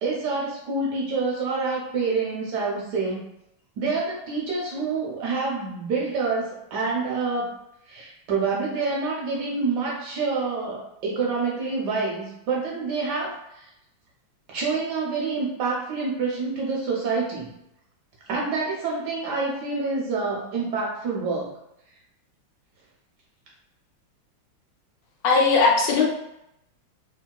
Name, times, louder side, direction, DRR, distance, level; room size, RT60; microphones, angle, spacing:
voice 1, 0.0-3.2 3.8-7.5 7.9-13.7 14.5-17.5 18.3-21.5, right 4 dB, 70° right, -3 dB, 1.0 m, -27 dB
voice 2, 25.2-26.1, left 4 dB, 75° left, 0 dB, 1.1 m, -18 dB
2.9 x 2.7 x 2.3 m, 0.83 s
omnidirectional pair, 2.2 m